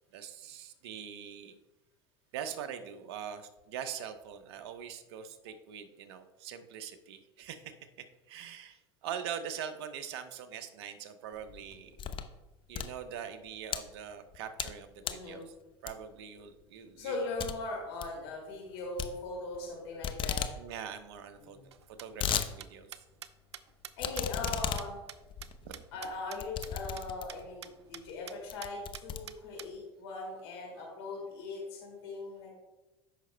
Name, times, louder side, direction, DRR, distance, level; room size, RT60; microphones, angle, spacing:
voice 1, 0.1-1.5 2.3-7.7 8.3-12.0 12.7-15.5 15.8-17.2 20.6-21.6 21.9-22.9 25.6-25.9 30.8-30.9, right 8 dB, 70° right, 9 dB, 0.9 m, -43 dB
sound 1, 11.4-12.3 12.6-13.8 14.3-14.8 15.0-15.3 15.9-16.2 16.6-16.7 17.0-17.1 17.4-17.5 17.8-18.1 19.0-19.7 20.0-20.5 20.9-21.0 21.1-21.2 21.8-22.5 22.9-23.0 24.0-27.5 28.1-28.2 28.5-29.7, left 8 dB, 40° left, 0.7 m, -36 dB
voice 2, 15.0-15.5 17.0-20.4 21.4-21.6 24.0-25.0 25.9-32.5, left 3 dB, 75° left, -2 dB, 2.4 m, -40 dB
sound 2, 21.7-26.4 26.6-26.7 27.0-27.1 27.3-27.4 27.6-28.0 28.3-28.4 28.6-29.7, right 10 dB, 90° right, 0.4 m, -45 dB
14.0 x 5.9 x 2.2 m, 1.1 s
hypercardioid pair, 80°, 14 cm